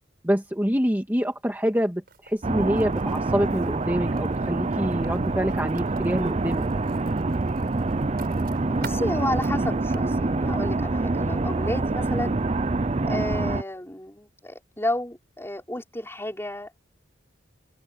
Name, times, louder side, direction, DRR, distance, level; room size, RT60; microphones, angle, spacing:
voice 1, 0.2-6.6, equal, 10° right, 1.8 m, -26 dB
Writing, 2.1-10.0, right 5 dB, 55° right, 6.6 m, -49 dB
sound 1, 2.4-13.6, right 3 dB, 35° right, 0.6 m, -26 dB
voice 2, 8.7-12.4 13.1-16.8, left 1 dB, 15° left, 5.3 m, -31 dB
open air
head